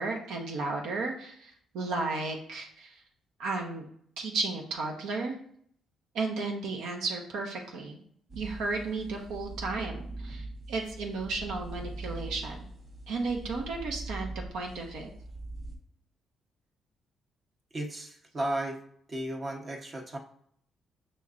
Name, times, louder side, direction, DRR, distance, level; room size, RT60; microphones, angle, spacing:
voice 1, 0.0-3.0 3.4-3.8 4.2-5.3 6.1-8.0 8.3-12.7 13.1-15.1, right 3 dB, 85° right, 1 dB, 0.8 m, -34 dB
sound 1, 8.3-15.7, right 2 dB, 55° right, 1.2 m, -42 dB
voice 2, 17.7-18.8 19.1-20.2, right 1 dB, 35° right, 1 dB, 0.9 m, -34 dB
5.7 x 3.0 x 2.5 m, 0.64 s
cardioid pair, 90°, 0 cm